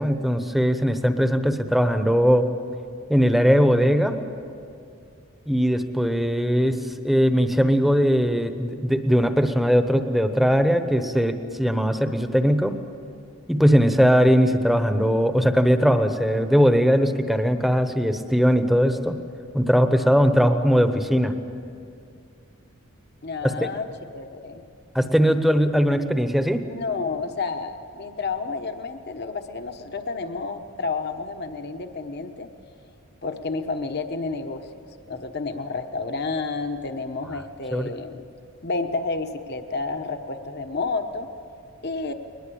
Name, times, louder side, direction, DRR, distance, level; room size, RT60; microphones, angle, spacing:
voice 1, 0.0-2.5 3.1-4.1 5.5-12.7 13.5-19.2 19.5-21.3 23.4-23.5 24.9-26.6 37.7-37.9, equal, ahead, 8 dB, 1.0 m, -20 dB
voice 2, 23.2-24.6 26.6-32.5 33.2-34.7 35.1-38.2 38.6-41.3 41.8-42.1, left 4 dB, 50° left, 6 dB, 1.1 m, -30 dB
22.0 x 20.0 x 8.6 m, 2.5 s
head